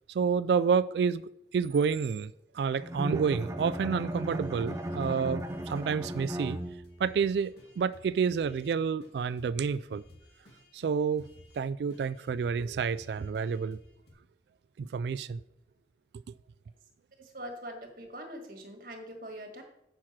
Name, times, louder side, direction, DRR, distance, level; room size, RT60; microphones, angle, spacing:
voice 1, 0.1-6.6 7.0-10.0 10.7-11.3 11.5-13.8 14.8-15.4, right 6 dB, 70° right, 0.3 m, -29 dB
Bowed string instrument, 2.8-7.1, equal, 15° right, 0.6 m, -36 dB
sound 1, 3.6-5.8 6.1-8.7 9.0-9.1 9.4-11.6 11.9-14.1, left 1 dB, 75° left, 2.4 m, -56 dB
voice 2, 17.2-19.6, equal, 50° right, 1.7 m, -43 dB
6.5 x 5.9 x 7.4 m
head